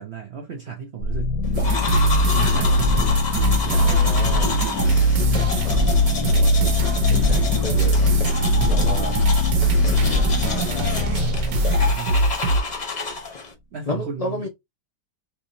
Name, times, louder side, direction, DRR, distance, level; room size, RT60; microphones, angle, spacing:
voice 1, 0.0-1.8 2.2-2.9 3.5-3.9 5.2-6.5 8.6-9.2 11.1-12.3 13.7-14.5, right 8 dB, 70° right, 0.6 m, -35 dB
sound 1, 1.0-12.8, left 4 dB, 65° left, 1.1 m, -26 dB
sound 2, 1.5-12.6, equal, 85° right, 1.5 m, -21 dB
sound 3, 1.6-13.5, left 4 dB, 35° left, 0.8 m, -30 dB
voice 2, 3.7-4.6 5.6-5.8 6.2-8.1 8.7-9.1 10.0-11.1 13.9-14.5, left 2 dB, 90° left, 0.3 m, -32 dB
3.5 x 3.0 x 2.6 m
omnidirectional pair, 1.9 m